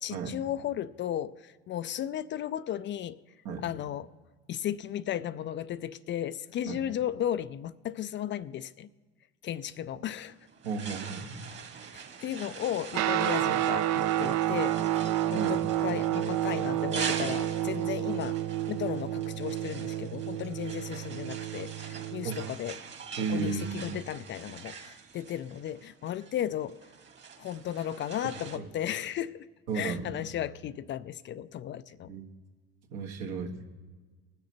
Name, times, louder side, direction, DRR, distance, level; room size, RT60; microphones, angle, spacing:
voice 1, 0.0-3.2 3.6-4.1 4.5-8.9 9.4-10.4 11.9-18.4 18.7-22.8 23.3-26.9 27.4-29.5 29.7-32.1, left 11 dB, 35° left, 0.4 m, -35 dB
sound 1, 10.1-28.6, right 6 dB, 35° right, 1.7 m, -43 dB
voice 2, 10.6-11.5 15.3-15.6 22.2-22.4 23.2-24.0 28.5-28.7 29.7-30.2 32.1-32.2 32.9-33.6, right 5 dB, 70° right, 1.8 m, -34 dB
Guitar, 12.9-22.6, right 12 dB, 55° right, 0.6 m, -30 dB
19.5 x 6.7 x 4.3 m
hypercardioid pair, 75°, 32 cm